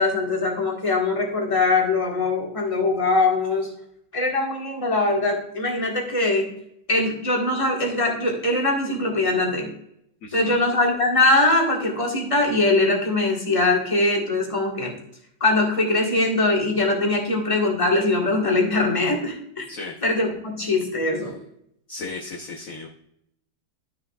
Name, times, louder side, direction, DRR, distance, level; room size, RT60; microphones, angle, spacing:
voice 1, 0.0-3.7 4.1-6.5 6.9-9.7 10.3-14.9 15.4-19.6 20.0-21.4, left 2 dB, 15° left, -1 dB, 1.5 m, -22 dB
voice 2, 10.2-10.6 19.7-20.0 21.9-22.9, left 3 dB, 55° left, -1 dB, 1.1 m, -35 dB
12.0 x 6.8 x 2.3 m, 0.73 s
omnidirectional pair, 2.2 m